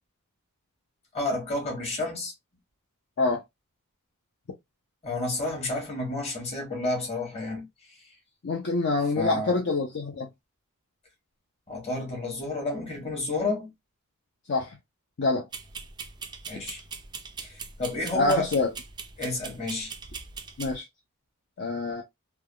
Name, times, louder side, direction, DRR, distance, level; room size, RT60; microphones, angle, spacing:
voice 1, 1.1-2.3 5.0-7.7 9.2-9.6 11.7-13.7 16.5-16.8 17.4-18.5 19.2-19.9, left 2 dB, 30° left, 1.2 m, -30 dB
voice 2, 8.4-10.3 14.5-14.8 15.2-15.5 18.1-18.7 20.6-20.9 21.6-22.0, left 3 dB, 55° left, 0.5 m, -26 dB
sound 1, 15.5-20.8, right 5 dB, 20° right, 0.3 m, -41 dB
3.3 x 2.2 x 2.2 m
head